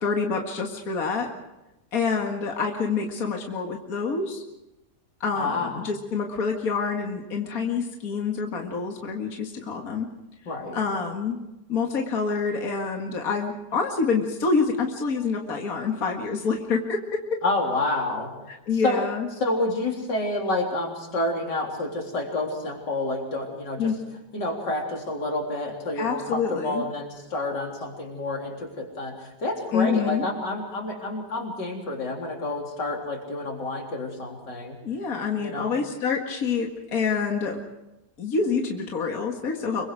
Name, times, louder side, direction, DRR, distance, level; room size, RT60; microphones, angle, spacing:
voice 1, 0.0-1.3 1.9-4.4 5.2-10.1 10.7-11.4 11.7-17.2 18.7-19.3 23.8-24.0 26.0-26.8 29.7-30.3 34.8-37.6 38.2-39.9, left 5 dB, 55° left, 2 dB, 2.3 m, -27 dB
voice 2, 5.3-5.8 10.5-10.8 17.4-18.3 18.8-19.0 19.4-23.9 24.3-34.8 35.4-35.8, left 2 dB, 90° left, 0 dB, 4.5 m, -29 dB
26.0 x 23.0 x 4.9 m, 0.94 s
omnidirectional pair, 1.8 m